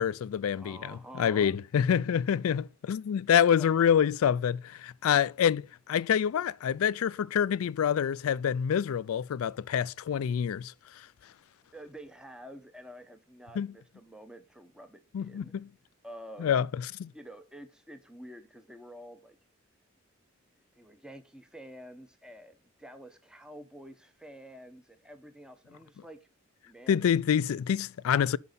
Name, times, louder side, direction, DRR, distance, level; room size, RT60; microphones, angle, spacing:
voice 1, 0.0-10.7 13.6-13.7 15.1-15.6 16.4-16.7 17.0-17.1 26.9-28.4, left 8 dB, 85° left, 0.3 m, -27 dB
voice 2, 0.5-1.6 3.6-3.7 11.7-15.5 16.0-16.6 17.1-19.4 20.8-26.2 26.6-27.2, equal, 5° right, 1.0 m, -48 dB
11.0 x 5.3 x 3.9 m
head